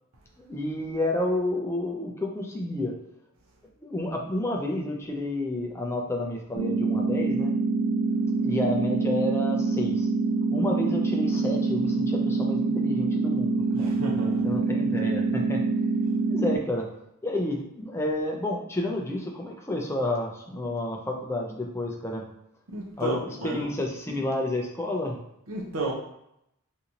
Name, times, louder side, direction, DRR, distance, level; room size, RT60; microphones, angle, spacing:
voice 1, 0.4-3.0 3.8-7.5 8.4-10.1 10.5-13.9 14.4-15.6 16.3-16.9 17.2-22.2 23.0-25.2, left 1 dB, 10° left, 0 dB, 0.4 m, -30 dB
sound 1, 6.5-16.6, right 3 dB, 50° right, 1.3 m, -25 dB
voice 2, 13.7-14.5 22.7-23.7 25.5-25.9, right 2 dB, 70° right, -2 dB, 0.7 m, -32 dB
3.8 x 2.7 x 2.8 m, 0.79 s
head